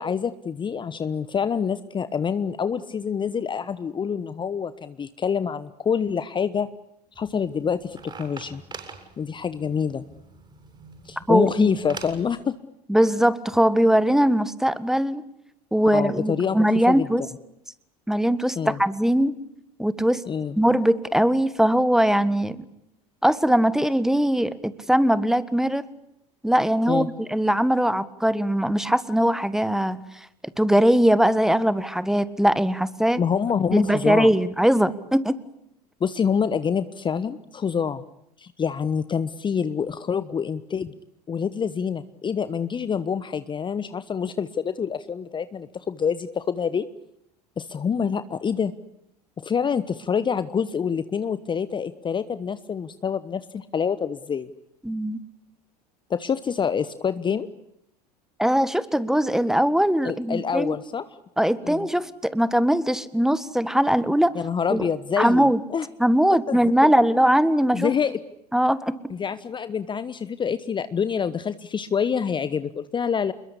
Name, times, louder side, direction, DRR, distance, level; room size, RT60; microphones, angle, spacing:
voice 1, 0.0-6.7 7.2-8.6 9.2-10.0 11.0-12.5 15.9-16.6 16.8-17.3 18.6-18.8 20.2-20.6 26.9-27.1 33.2-34.3 36.0-38.0 38.4-40.9 41.3-46.9 47.6-48.7 49.4-54.5 56.1-57.5 60.0-61.0 61.6-61.9 64.3-65.9 66.3-66.6 67.7-68.2 69.1-73.3, left 7 dB, 25° left, 14 dB, 1.1 m, -26 dB
sound 1, 7.1-12.3, right 4 dB, 25° right, 7.6 m, -43 dB
voice 2, 11.3-11.7 12.9-15.2 15.7-17.2 18.1-19.4 19.8-20.2 20.6-22.6 23.2-25.9 26.4-30.0 30.6-33.2 33.7-35.4 54.8-55.2 58.4-60.7 61.4-64.4 64.7-64.9 65.2-65.6 66.0-67.9 68.5-69.1, equal, ahead, 16 dB, 1.6 m, -21 dB
28.5 x 22.0 x 8.4 m, 0.78 s
figure-of-eight pair, 75°, 20 cm